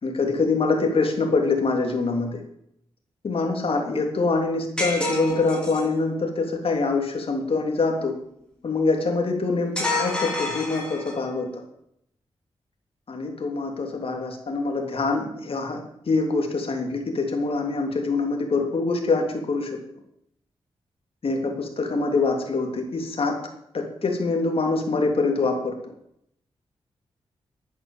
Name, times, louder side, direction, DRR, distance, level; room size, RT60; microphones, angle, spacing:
voice 1, 0.0-2.4 3.2-8.1 8.6-11.5 13.1-19.8 21.2-23.3 23.7-25.7, left 3 dB, 60° left, 2 dB, 3.3 m, -24 dB
sound 1, 4.8-6.0 9.8-11.3, left 1 dB, 10° left, 5.0 m, -28 dB
11.0 x 10.5 x 7.4 m, 0.75 s
cardioid pair, 60°, 11 cm